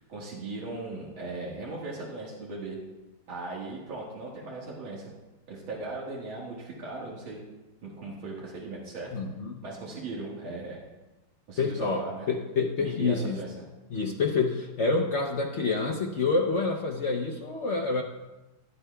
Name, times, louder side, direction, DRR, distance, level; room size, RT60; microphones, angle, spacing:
voice 1, 0.0-2.8 3.3-5.1 5.5-7.4 7.8-9.1 9.6-10.8 11.5-12.3 12.8-13.5, right 2 dB, 85° right, -4 dB, 2.5 m, -38 dB
voice 2, 9.1-9.6 11.6-13.4 13.9-18.0, left 4 dB, 70° left, 1 dB, 0.6 m, -28 dB
15.5 x 10.5 x 2.3 m, 1.1 s
omnidirectional pair, 2.2 m